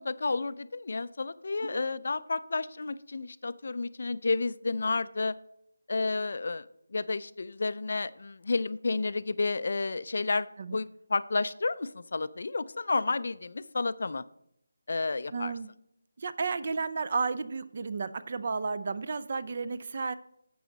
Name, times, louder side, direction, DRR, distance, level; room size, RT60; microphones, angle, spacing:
voice 1, 0.0-5.3 5.9-10.5 10.7-14.2 14.9-15.5, left 3 dB, 50° left, 16 dB, 0.4 m, -31 dB
voice 2, 15.3-15.7 16.2-20.1, right 4 dB, 35° right, 15 dB, 0.5 m, -32 dB
11.0 x 7.8 x 3.9 m, 0.76 s
figure-of-eight pair, 175°, 0 cm